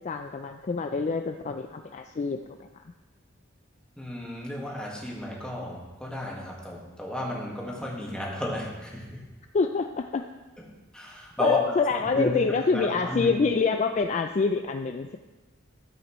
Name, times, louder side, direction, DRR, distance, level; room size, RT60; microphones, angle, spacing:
voice 1, 0.0-2.7 9.5-10.3 11.4-15.2, left 4 dB, 35° left, 5 dB, 0.4 m, -26 dB
voice 2, 4.0-9.2 10.6-10.7 10.9-11.6 12.0-12.4 12.7-13.3, left 1 dB, 5° left, -3 dB, 1.7 m, -33 dB
13.0 x 7.8 x 3.1 m, 1.2 s
head